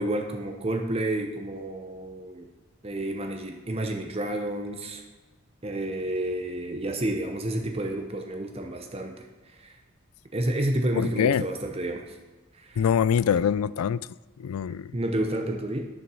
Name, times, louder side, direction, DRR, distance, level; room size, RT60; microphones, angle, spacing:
voice 1, 0.0-2.5 2.8-5.0 5.6-9.8 10.3-12.2 12.5-12.8 14.9-15.9, right 1 dB, 25° right, 0.8 m, -30 dB
voice 2, 11.0-11.5 12.8-14.1 14.4-14.9, left 8 dB, 80° left, 0.3 m, -24 dB
11.5 x 7.2 x 6.2 m
head